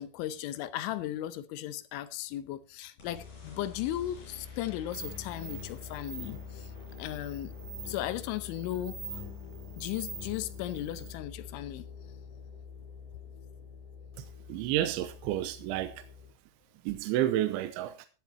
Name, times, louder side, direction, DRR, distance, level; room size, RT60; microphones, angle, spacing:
voice 1, 0.0-6.7 7.0-7.5 7.9-9.2 9.8-11.8, left 13 dB, 80° left, 3.1 m, -36 dB
sound 1, 3.0-16.3, left 6 dB, 40° left, 5.8 m, -46 dB
sound 2, 4.9-11.1, right 2 dB, 30° right, 6.5 m, -45 dB
voice 2, 14.2-16.1 16.9-18.1, right 13 dB, 80° right, 3.0 m, -31 dB
15.5 x 11.0 x 3.0 m
omnidirectional pair, 5.7 m